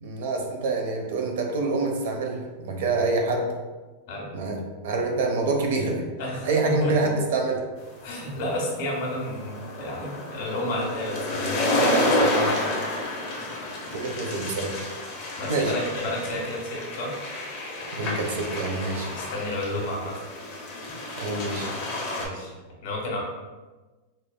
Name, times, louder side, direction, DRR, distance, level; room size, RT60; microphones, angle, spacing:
voice 1, 0.0-3.5 4.3-6.1 6.4-7.6 13.9-14.8 15.5-15.7 17.9-19.1 21.2-21.7, right 3 dB, 65° right, 2 dB, 0.7 m, -26 dB
voice 2, 6.2-7.1 8.0-12.6 15.4-17.1 19.1-20.1 22.2-22.5 22.8-23.2, left 1 dB, 45° left, -1 dB, 1.0 m, -31 dB
sound 1, 8.0-22.2, left 1 dB, 30° left, 0.7 m, -30 dB
5.1 x 2.6 x 2.2 m, 1.2 s
supercardioid pair, 170°, 0 cm